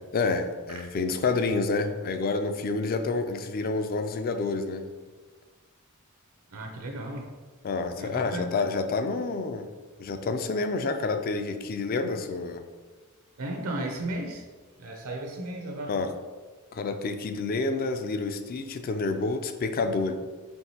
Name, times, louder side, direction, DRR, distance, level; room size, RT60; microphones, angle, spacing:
voice 1, 0.1-4.9 7.6-9.7 10.0-12.7 15.9-16.1 16.7-20.1, left 3 dB, 40° left, 8 dB, 0.3 m, -28 dB
voice 2, 6.5-7.3 7.9-8.5 13.4-14.4 14.8-15.9, right 1 dB, 75° right, 2 dB, 0.6 m, -35 dB
4.5 x 3.3 x 2.8 m, 1.4 s
head